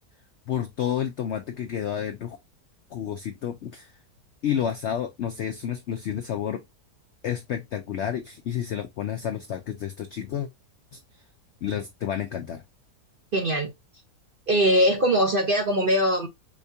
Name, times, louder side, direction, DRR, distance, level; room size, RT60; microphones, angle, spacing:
voice 1, 0.5-2.4 2.9-3.9 4.4-6.6 7.2-10.5 10.9-11.0 11.6-12.6, left 9 dB, 75° left, 0.6 m, -30 dB
voice 2, 13.3-13.7 14.5-16.3, equal, 55° right, 0.6 m, -21 dB
5.1 x 2.3 x 2.6 m
omnidirectional pair, 1.7 m